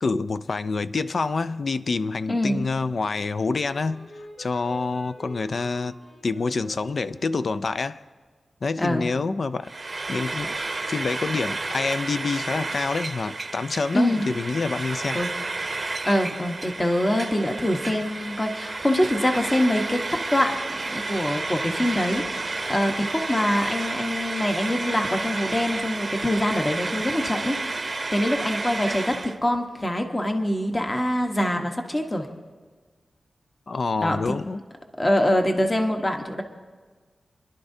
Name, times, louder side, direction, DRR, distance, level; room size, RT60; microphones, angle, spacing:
voice 1, 0.0-4.1 4.4-5.9 6.2-8.0 8.6-9.7 10.1-10.5 10.9-15.2 33.7-34.6, left 4 dB, 55° left, 14 dB, 0.4 m, -27 dB
voice 2, 2.3-2.6 8.8-9.1 13.9-14.2 15.1-15.3 16.0-20.0 20.3-27.8 28.1-32.3 34.0-34.3 35.0-36.4, left 1 dB, 20° left, 4 dB, 1.1 m, -24 dB
Wind instrument woodwind instrument, 2.7-7.8, left 1 dB, 40° left, 4.5 m, -46 dB
Frying (food), 9.6-29.4, right 3 dB, 35° right, 0.7 m, -31 dB
26.5 x 11.5 x 2.7 m, 1.4 s
wide cardioid pair, 115°, 0 cm